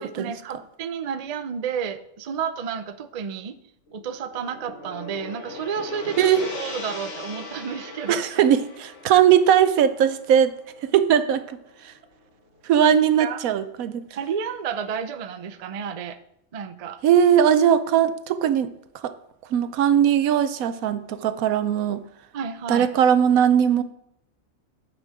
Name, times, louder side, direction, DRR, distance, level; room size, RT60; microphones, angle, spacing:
voice 1, 0.0-3.6 3.9-8.2 13.2-13.4 14.2-16.2 16.5-17.0 22.3-22.9, right 7 dB, 50° right, 10 dB, 0.4 m, -31 dB
Gong, 3.9-12.2, left 2 dB, 60° left, 1.7 m, -39 dB
voice 2, 8.1-10.5 10.9-11.6 12.7-14.0 17.0-18.7 19.0-19.1 19.5-22.0 22.7-23.8, right 9 dB, 85° right, 13 dB, 1.1 m, -19 dB
9.2 x 6.1 x 4.9 m, 0.78 s
omnidirectional pair, 1.4 m